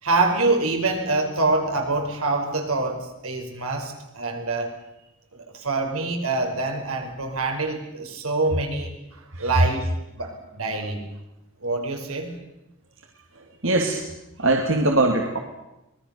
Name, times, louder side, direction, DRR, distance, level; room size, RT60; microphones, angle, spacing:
voice 1, 0.0-4.7 5.3-11.0 11.6-12.3 13.3-13.4, right 3 dB, 80° right, 3 dB, 5.1 m, -26 dB
voice 2, 13.6-14.0 14.4-15.4, right 2 dB, 60° right, 2 dB, 2.5 m, -21 dB
25.5 x 21.0 x 6.9 m, 0.94 s
head